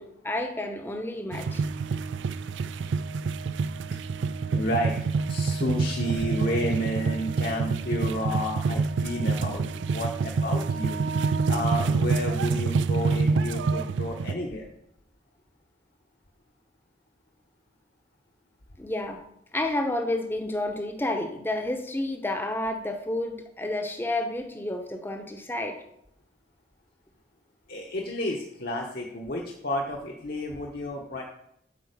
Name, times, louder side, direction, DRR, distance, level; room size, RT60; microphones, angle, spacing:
voice 1, 0.0-1.6 18.8-19.2 19.5-25.8, left 1 dB, 10° left, 5 dB, 0.8 m, -30 dB
sound 1, 1.3-14.4, right 4 dB, 75° right, 0.4 m, -27 dB
voice 2, 4.5-4.9 5.3-11.0 11.5-14.7 27.7-31.2, equal, 55° left, 0 dB, 1.0 m, -31 dB
8.6 x 4.6 x 6.7 m, 0.77 s
head